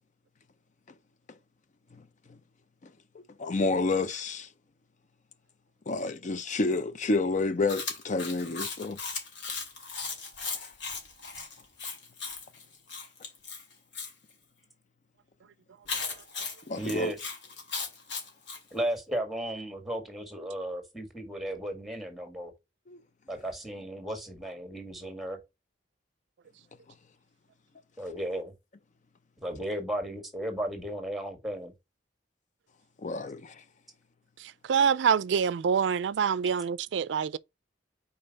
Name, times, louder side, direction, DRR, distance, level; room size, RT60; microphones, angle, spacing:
voice 1, 3.4-4.5 5.9-9.0 10.5-10.7 16.7-17.1 22.9-23.0 33.0-33.6, left 3 dB, 45° left, 0.5 m, -29 dB
Chewing mastication, 7.7-14.1 15.9-18.6, left 4 dB, 80° left, 2.5 m, -37 dB
voice 2, 16.8-17.2 18.7-22.5 23.3-25.4 28.0-28.5 29.4-31.7, right 1 dB, ahead, 1.6 m, -35 dB
voice 3, 34.4-37.4, right 7 dB, 75° right, 0.4 m, -26 dB
5.4 x 4.3 x 4.0 m
head